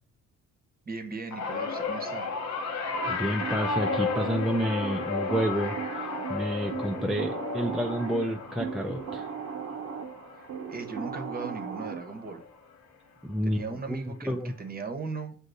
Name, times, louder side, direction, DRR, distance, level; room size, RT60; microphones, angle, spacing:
voice 1, 0.8-2.3 10.3-12.4 13.4-15.4, right 4 dB, 30° right, 6 dB, 0.9 m, -38 dB
sound 1, 1.3-11.7 12.1-12.5 13.6-13.7, left 5 dB, 60° left, 0.8 m, -34 dB
sound 2, 2.9-12.4, right 7 dB, 65° right, 0.7 m, -37 dB
voice 2, 3.1-9.3 13.2-14.5, equal, ahead, 3 dB, 0.3 m, -30 dB
7.7 x 2.6 x 2.6 m, 0.42 s
cardioid pair, 90°, 30 cm